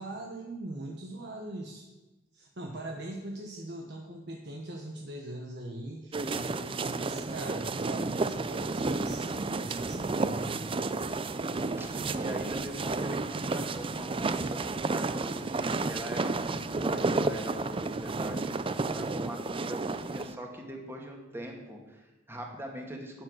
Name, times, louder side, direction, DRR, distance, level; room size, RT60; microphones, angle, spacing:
voice 1, 0.0-1.9 2.3-10.7, right 1 dB, 65° right, 1 dB, 1.2 m, -41 dB
footsteps boots group soft snow, 6.1-20.4, right 3 dB, 30° right, 0.5 m, -31 dB
voice 2, 11.8-14.6 14.9-23.2, right 1 dB, 15° right, 1 dB, 2.0 m, -41 dB
10.5 x 9.3 x 6.3 m, 1.1 s
head